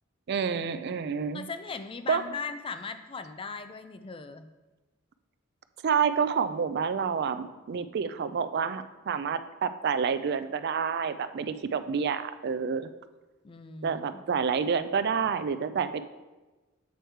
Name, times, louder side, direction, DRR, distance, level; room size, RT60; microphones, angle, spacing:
voice 1, 0.3-1.4 2.1-2.2 5.8-12.9 13.8-16.0, right 6 dB, 50° right, 12 dB, 0.4 m, -28 dB
voice 2, 1.3-4.5 13.4-14.2, left 4 dB, 25° left, 9 dB, 0.4 m, -38 dB
8.0 x 4.6 x 4.5 m, 1.2 s
head